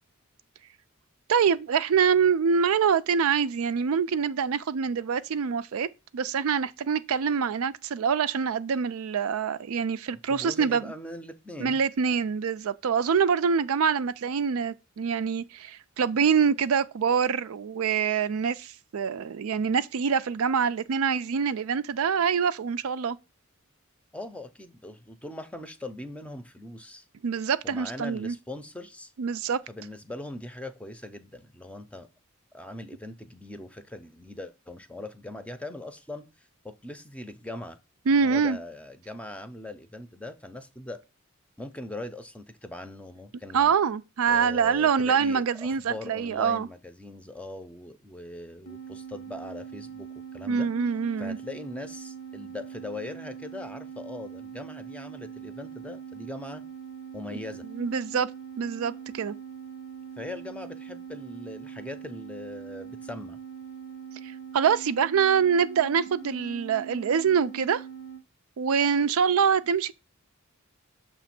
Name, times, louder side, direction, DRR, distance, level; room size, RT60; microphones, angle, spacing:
voice 1, 1.3-5.9 6.1-10.9 11.6-23.2 27.2-28.3 29.2-29.6 38.1-38.6 43.5-46.7 50.5-51.4 57.3-57.4 57.7-58.3 58.6-59.3 64.5-67.8 68.6-69.9, right 6 dB, 70° right, 0.4 m, -25 dB
voice 2, 10.1-11.8 24.1-27.1 27.6-29.1 29.7-32.1 32.5-37.8 38.1-41.0 41.6-43.7 44.3-50.7 51.2-56.6 57.1-57.6 60.2-63.4, left 2 dB, 5° left, 0.6 m, -40 dB
sound 1, 48.7-68.2, right 7 dB, 75° left, 0.9 m, -42 dB
6.7 x 3.1 x 5.8 m
head